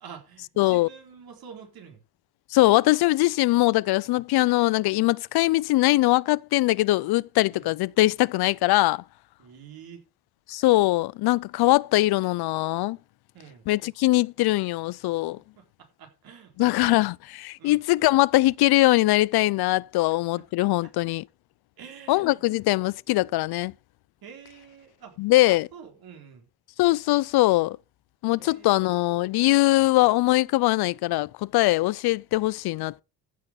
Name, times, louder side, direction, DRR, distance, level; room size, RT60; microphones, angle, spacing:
voice 1, 0.0-2.0 7.5-7.7 9.4-10.0 13.3-13.7 15.6-17.0 17.6-17.8 20.1-20.2 20.8-20.9 21.8-22.5 24.2-25.1 25.7-26.5 28.4-28.9, right 7 dB, 70° right, 4.3 m, -47 dB
voice 2, 0.6-0.9 2.5-9.0 10.5-13.0 13.7-15.4 16.6-21.2 22.1-23.7 25.2-25.7 26.8-27.8 28.2-33.0, left 18 dB, 80° left, 0.5 m, -22 dB
14.5 x 6.5 x 5.2 m
cardioid pair, 105°, 37 cm